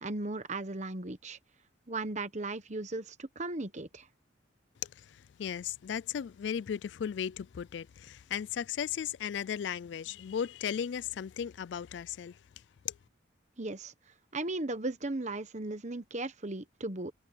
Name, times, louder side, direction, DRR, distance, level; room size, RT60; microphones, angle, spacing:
voice 1, 0.0-1.4 1.9-4.1 13.6-13.9 14.3-17.1, right 2 dB, 35° right, 1.2 m, -36 dB
voice 2, 4.8-12.4 12.8-12.9, left 8 dB, 65° left, 0.3 m, -36 dB
head